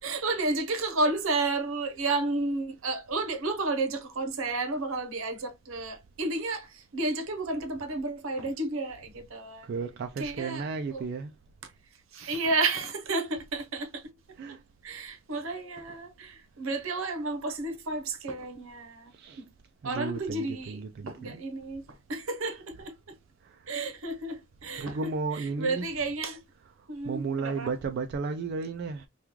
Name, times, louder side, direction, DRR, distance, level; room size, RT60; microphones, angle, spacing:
voice 1, 0.0-9.7 10.2-11.0 12.1-14.0 14.5-14.6 14.8-19.1 19.4-19.5 19.8-23.2 23.7-26.4 26.9-27.7, right 3 dB, 70° right, 0.8 m, -32 dB
voice 2, 9.6-11.3 14.4-14.6 15.4-15.5 19.1-19.4 19.8-21.4 23.4-23.7 24.8-25.9 27.0-29.1, right 4 dB, 50° right, 0.3 m, -34 dB
3.0 x 2.3 x 3.4 m
head